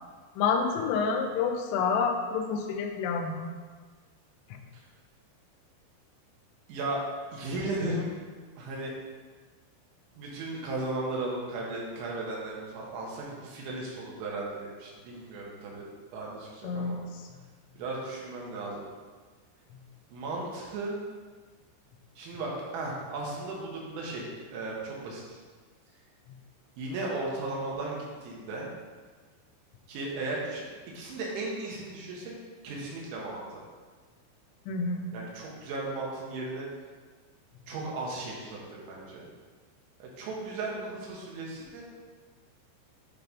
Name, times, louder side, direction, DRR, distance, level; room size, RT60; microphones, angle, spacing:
voice 1, 0.4-3.5 4.5-4.6 16.6-16.9 34.7-35.1, left 5 dB, 80° left, 4 dB, 3.1 m, -28 dB
voice 2, 6.7-7.0 7.3-8.1 8.6-8.9 10.1-15.9 16.1-17.0 17.8-18.9 20.1-21.0 22.2-25.4 26.8-28.7 29.9-30.6 30.9-32.3 32.6-33.6 35.1-36.7 37.7-39.3 40.0-41.8, right 2 dB, 75° right, -3 dB, 3.5 m, -36 dB
9.4 x 3.2 x 5.3 m, 1.5 s
omnidirectional pair, 5.6 m